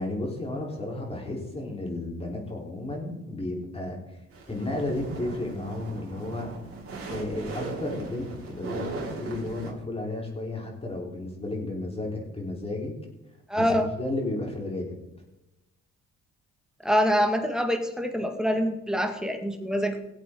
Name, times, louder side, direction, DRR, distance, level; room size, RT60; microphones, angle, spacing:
voice 1, 0.0-4.2 4.5-6.5 7.1-12.9 13.6-14.9, left 2 dB, 20° left, -1 dB, 4.0 m, -33 dB
sound 1, 4.3-9.7, right 3 dB, 50° right, 4.0 m, -38 dB
voice 2, 13.5-13.9 16.8-20.0, equal, ahead, 5 dB, 1.9 m, -25 dB
18.5 x 8.2 x 3.9 m, 0.94 s
cardioid pair, 90°, 30 cm